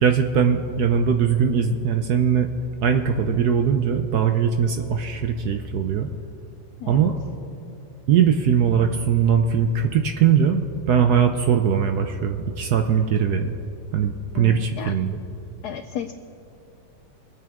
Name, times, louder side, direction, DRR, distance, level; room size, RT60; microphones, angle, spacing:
voice 1, 0.0-2.5 2.8-6.1 6.9-7.1 8.1-13.5 13.9-15.2, right 7 dB, 70° right, 6 dB, 0.9 m, -20 dB
voice 2, 14.3-14.9 15.6-16.1, left 9 dB, 85° left, 8 dB, 0.8 m, -33 dB
23.5 x 9.0 x 3.6 m, 2.8 s
omnidirectional pair, 2.2 m